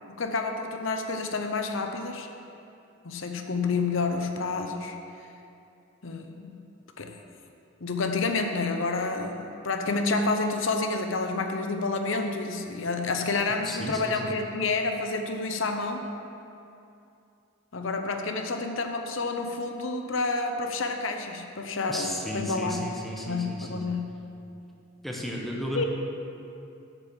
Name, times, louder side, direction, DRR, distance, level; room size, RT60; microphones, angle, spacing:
voice 1, 0.1-2.3 3.0-5.0 6.0-6.6 7.0-7.1 7.8-16.1 17.7-22.9 23.2-24.2 25.7-25.8, left 3 dB, 70° left, 5 dB, 0.8 m, -29 dB
voice 2, 13.6-14.1 21.9-24.0 25.0-25.8, equal, ahead, -2 dB, 0.9 m, -34 dB
8.4 x 6.7 x 7.4 m, 2.7 s
head